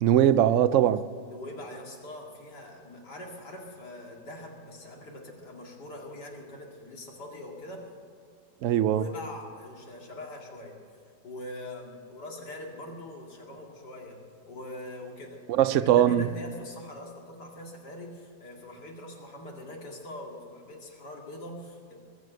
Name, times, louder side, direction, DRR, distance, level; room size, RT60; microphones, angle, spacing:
voice 1, 0.0-1.1 8.6-9.0 15.5-16.3, right 11 dB, 75° right, 0.7 m, -21 dB
voice 2, 1.3-7.9 8.8-10.8 11.2-21.9, left 1 dB, 75° left, 2.9 m, -43 dB
21.5 x 7.7 x 7.7 m
omnidirectional pair, 1.8 m